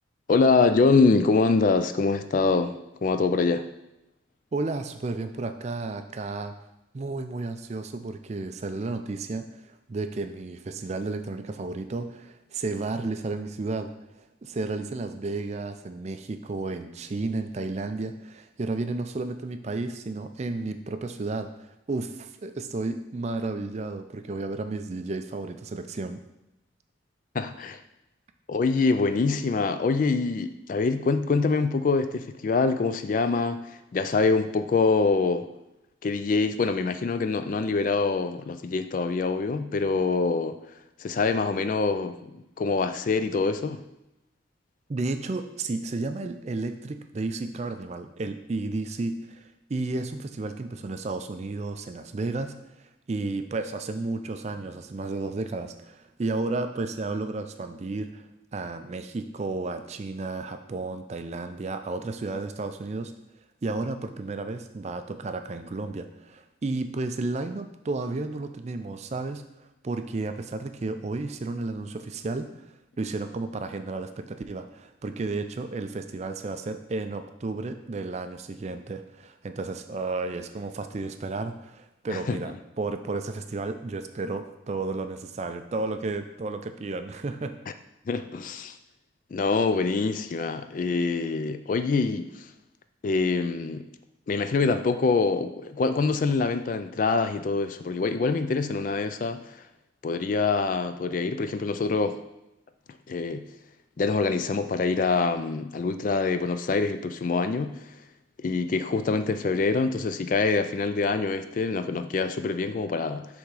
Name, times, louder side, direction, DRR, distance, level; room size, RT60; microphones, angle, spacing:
voice 1, 0.3-3.7 27.3-27.8 28.5-35.5 36.0-40.6 41.0-42.3 42.6-43.8 82.1-82.4 88.1-88.8 89.3-92.5 93.0-93.8 94.3-99.6 100.0-102.2 103.1-103.4 104.0-107.7 108.4-113.3, left 4 dB, 40° left, 10 dB, 0.3 m, -25 dB
voice 2, 4.5-6.5 6.9-26.2 44.9-58.3 58.5-63.1 63.6-87.5, right 3 dB, 35° right, 8 dB, 0.4 m, -32 dB
6.6 x 3.6 x 4.8 m, 0.91 s
head